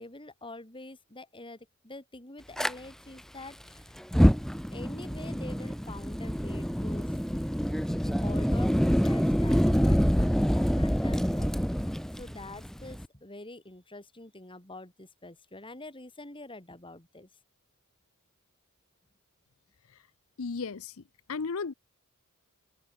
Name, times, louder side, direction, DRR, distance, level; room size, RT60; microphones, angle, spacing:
voice 1, 0.0-3.9 4.7-7.2 8.0-11.5 12.1-17.3, left 2 dB, 25° left, 4.7 m, -46 dB
Fire, 2.6-2.7 4.0-13.1, equal, ahead, 1.1 m, -26 dB
voice 2, 20.4-21.0 21.3-21.7, left 4 dB, 70° left, 0.7 m, -34 dB
head